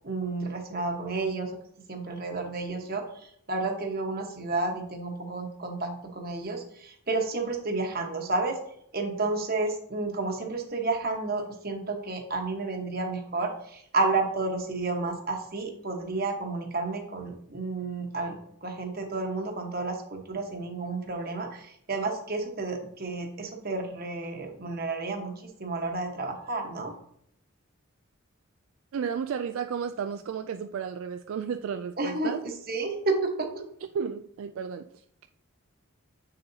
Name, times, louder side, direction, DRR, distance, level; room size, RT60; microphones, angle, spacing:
voice 1, 0.0-1.5 1.9-8.6 8.9-26.9 32.0-32.3 32.7-33.6, right 3 dB, 45° right, 1.2 m, -31 dB
voice 2, 28.9-32.4 33.9-35.3, right 7 dB, 70° right, 0.3 m, -33 dB
7.1 x 6.7 x 2.8 m
head